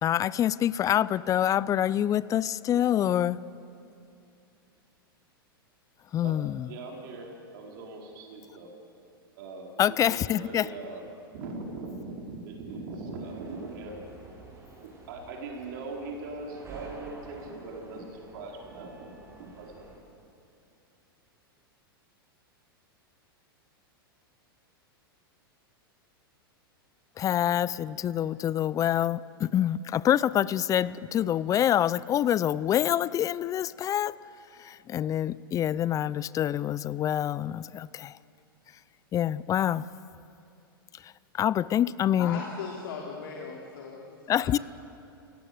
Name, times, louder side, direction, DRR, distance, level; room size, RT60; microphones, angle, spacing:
voice 1, 0.0-3.4 6.1-6.7 9.8-10.7 27.2-34.2 34.6-38.2 39.1-39.9 41.0-42.4 44.3-44.6, left 11 dB, 25° left, 20 dB, 0.5 m, -26 dB
voice 2, 6.7-8.7 9.4-11.1 11.3-14.0 14.8-19.9, right 3 dB, 60° right, 0 dB, 4.3 m, -40 dB
sound 1, 13.2-20.0, right 3 dB, 20° right, 7.8 m, -50 dB
voice 3, 42.2-44.6, left 5 dB, 70° left, -1 dB, 3.2 m, -39 dB
29.0 x 17.5 x 7.9 m, 2.6 s
hypercardioid pair, 105°, 12 cm